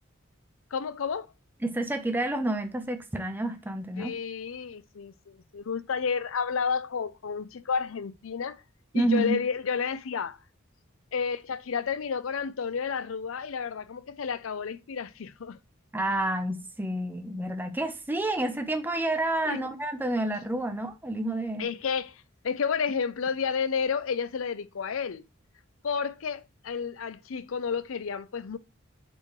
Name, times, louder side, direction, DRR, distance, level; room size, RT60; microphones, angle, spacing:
voice 1, 0.7-1.3 4.0-8.6 8.9-10.4 11.1-15.6 19.5-19.6 21.6-25.2 25.8-28.6, left 6 dB, 80° left, 0.5 m, -31 dB
voice 2, 1.6-4.1 8.9-9.4 15.9-21.7, right 1 dB, 10° right, 0.6 m, -29 dB
8.2 x 4.5 x 3.1 m
head